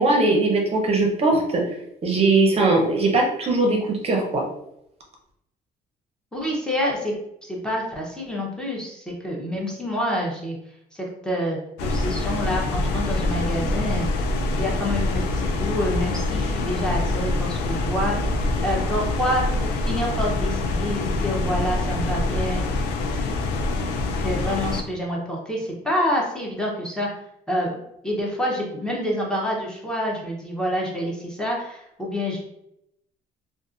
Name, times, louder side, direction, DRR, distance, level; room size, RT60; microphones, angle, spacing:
voice 1, 0.0-1.6 2.0-4.4, right 2 dB, 35° right, 0 dB, 0.6 m, -20 dB
voice 2, 6.3-7.1 7.5-10.6 10.9-14.1 14.5-18.3 18.6-22.6 24.2-27.1 27.5-32.4, equal, 5° left, -3 dB, 0.7 m, -27 dB
sound 1, 11.8-24.8, left 2 dB, 85° left, 0.4 m, -25 dB
2.5 x 2.4 x 2.4 m, 0.77 s
cardioid pair, 110°, 17 cm